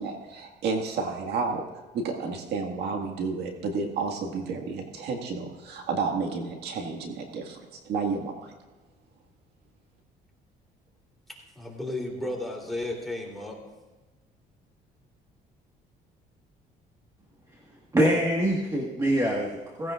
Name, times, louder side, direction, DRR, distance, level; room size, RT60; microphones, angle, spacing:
voice 1, 0.0-1.6 1.9-8.5, right 4 dB, 75° right, 3 dB, 1.9 m, -31 dB
voice 2, 11.3-13.6, left 1 dB, ahead, -2 dB, 3.3 m, -34 dB
voice 3, 17.9-19.9, equal, 20° right, -1 dB, 1.6 m, -24 dB
17.5 x 16.0 x 2.5 m, 1.2 s
cardioid pair, 110°, 17 cm